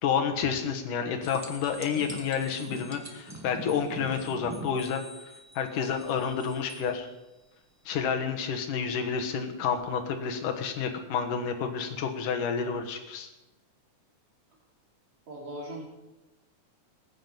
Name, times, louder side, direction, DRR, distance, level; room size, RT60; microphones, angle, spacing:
voice 1, 0.0-5.0 5.6-7.1 7.9-13.3, left 6 dB, 85° left, 5 dB, 3.0 m, -30 dB
sound 1, 1.2-6.9 9.8-9.9, equal, 15° right, 0.6 m, -43 dB
voice 2, 15.3-15.8, right 1 dB, 60° right, -3 dB, 4.9 m, -38 dB
20.5 x 9.9 x 5.4 m, 1.0 s
omnidirectional pair, 3.6 m